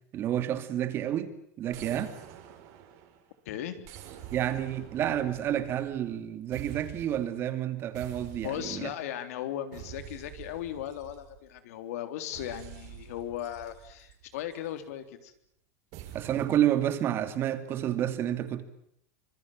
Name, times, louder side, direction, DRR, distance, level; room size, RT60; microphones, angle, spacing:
voice 1, 0.1-2.1 4.3-8.9 16.1-18.6, right 11 dB, 30° right, 2.5 m, -30 dB
sound 1, 1.7-3.3 3.8-6.2 6.5-7.4 7.9-9.0 9.7-11.6 12.3-14.7 15.9-16.7, right 10 dB, 45° right, 5.2 m, -47 dB
voice 2, 3.5-3.8 8.4-15.3, left 11 dB, 70° left, 3.7 m, -37 dB
26.0 x 24.0 x 7.4 m
supercardioid pair, 165°, 8 cm